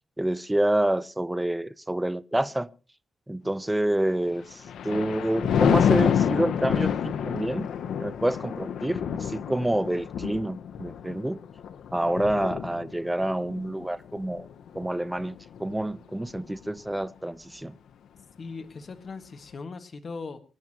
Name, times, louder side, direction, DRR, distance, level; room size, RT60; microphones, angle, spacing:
voice 1, 0.2-2.7 3.3-7.7 8.0-11.4 11.9-14.5 14.7-17.8, right 1 dB, 10° right, 0.6 m, -28 dB
Thunder, 4.3-15.8 16.3-16.6, left 8 dB, 85° left, 0.7 m, -28 dB
voice 2, 18.4-20.4, left 4 dB, 40° left, 1.6 m, -39 dB
25.0 x 10.5 x 2.9 m
wide cardioid pair, 130°, 0 cm